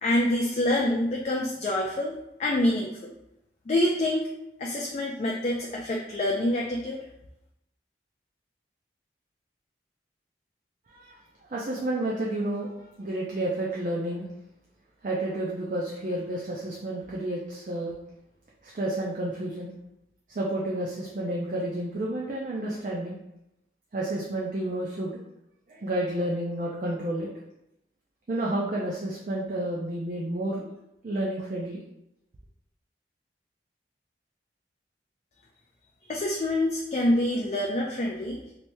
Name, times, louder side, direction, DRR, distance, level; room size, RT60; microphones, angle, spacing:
voice 1, 0.0-3.1 3.7-4.3 4.6-7.0 36.1-38.4, left 1 dB, 40° left, -1 dB, 0.3 m, -26 dB
voice 2, 11.5-14.3 15.0-17.9 18.6-19.7 20.3-23.2 23.9-25.2 25.7-27.3 28.3-30.7 31.0-31.8, right 1 dB, 45° right, -4 dB, 0.4 m, -30 dB
3.2 x 2.9 x 2.6 m, 0.85 s
head